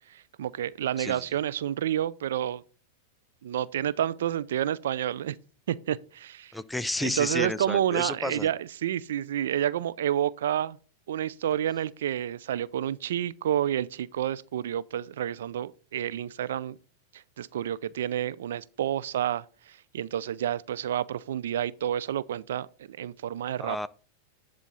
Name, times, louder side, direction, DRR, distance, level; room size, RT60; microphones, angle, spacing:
voice 1, 0.0-2.6 3.4-5.4 5.7-6.5 7.0-10.8 11.1-16.8 17.1-23.8, right 10 dB, 75° right, 0.4 m, -29 dB
voice 2, 6.5-8.5 23.6-23.9, left 1 dB, 5° left, 0.5 m, -31 dB
11.0 x 3.7 x 5.5 m
hypercardioid pair, 105°, 0 cm